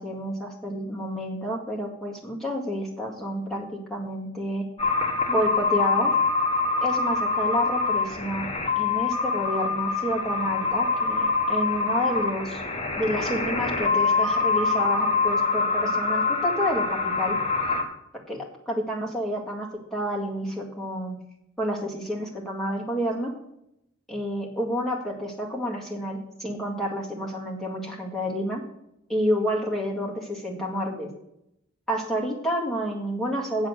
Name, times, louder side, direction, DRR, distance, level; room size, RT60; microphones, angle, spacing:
voice 1, 0.0-4.7 5.3-6.1 6.8-8.5 8.8-12.6 13.0-17.4 18.3-21.2 21.6-23.3 24.1-28.6 29.1-31.1 31.9-33.7, equal, ahead, -3 dB, 1.9 m, -29 dB
sound 1, 4.8-17.8, left 4 dB, 30° left, 1.2 m, -25 dB
8.6 x 7.3 x 6.4 m, 0.80 s
head